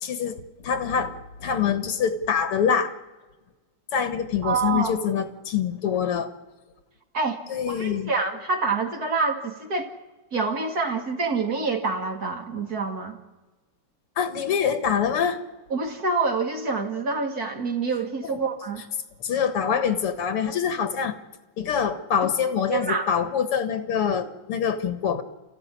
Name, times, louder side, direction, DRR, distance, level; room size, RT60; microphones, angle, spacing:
voice 1, 0.0-0.4 0.6-2.9 3.9-6.3 7.5-8.1 14.2-15.4 18.2-18.4 19.2-21.1 21.6-25.2, left 7 dB, 90° left, 9 dB, 2.5 m, -25 dB
voice 2, 4.4-4.9 7.1-9.9 10.3-13.2 15.7-18.8 22.2-22.3 22.7-23.1, right 4 dB, 45° right, 3 dB, 2.5 m, -27 dB
30.0 x 14.5 x 9.8 m, 1.2 s
omnidirectional pair, 2.4 m